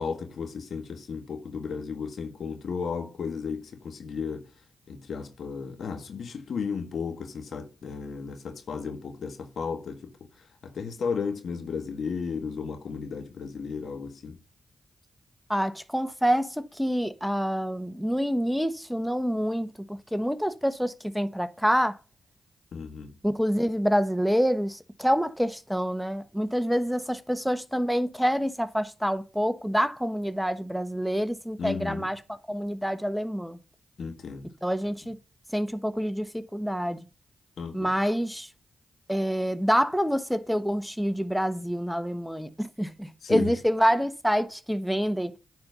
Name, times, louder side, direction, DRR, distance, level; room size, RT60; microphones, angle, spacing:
voice 1, 0.0-4.5 4.9-10.1 10.6-14.4 22.7-23.1 31.6-32.1 34.0-34.5 37.6-37.9 43.2-43.5, left 5 dB, 70° left, 1.7 m, -34 dB
voice 2, 15.5-22.0 23.2-32.2 32.5-33.6 34.6-35.2 35.5-37.0 37.7-38.5 39.1-45.3, equal, ahead, 1.0 m, -27 dB
9.6 x 4.4 x 5.5 m
supercardioid pair, 45°, 0 cm